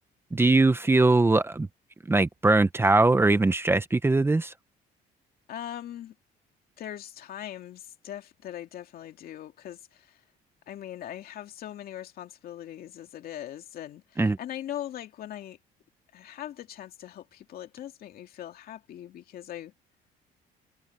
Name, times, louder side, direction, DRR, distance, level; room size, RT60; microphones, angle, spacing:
voice 1, 0.3-1.7 2.1-4.5 14.2-14.4, right 2 dB, 15° right, 0.9 m, -21 dB
voice 2, 5.5-6.2 6.8-10.2 10.7-15.6 16.1-19.7, left 11 dB, 60° left, 2.5 m, -40 dB
cardioid pair, 110°, 17 cm